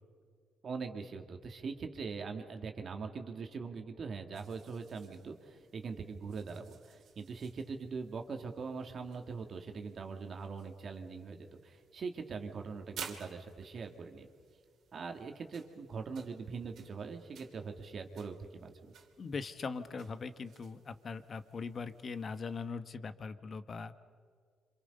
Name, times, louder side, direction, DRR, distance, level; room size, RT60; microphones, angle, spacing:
voice 1, 0.6-14.3 14.9-18.9, right 5 dB, 50° right, 5 dB, 2.2 m, -42 dB
sound 1, 4.3-22.6, right 7 dB, 70° right, 2.8 m, -56 dB
voice 2, 19.2-23.9, left 4 dB, 45° left, 12 dB, 1.2 m, -41 dB
27.5 x 26.5 x 5.5 m, 2.1 s
cardioid pair, 90°, 0 cm